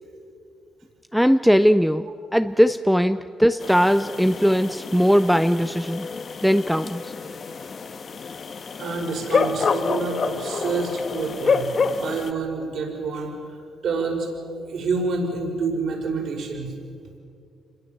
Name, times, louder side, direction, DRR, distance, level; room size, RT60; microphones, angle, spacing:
voice 1, 1.1-6.1 6.4-7.1, equal, ahead, 11 dB, 0.6 m, -19 dB
sound 1, 3.6-12.3, left 5 dB, 45° left, 1.3 m, -28 dB
voice 2, 8.8-13.3 13.8-16.7, right 4 dB, 65° right, 1 dB, 6.0 m, -28 dB
26.5 x 22.0 x 7.3 m, 2.3 s
cardioid pair, 90°, 0 cm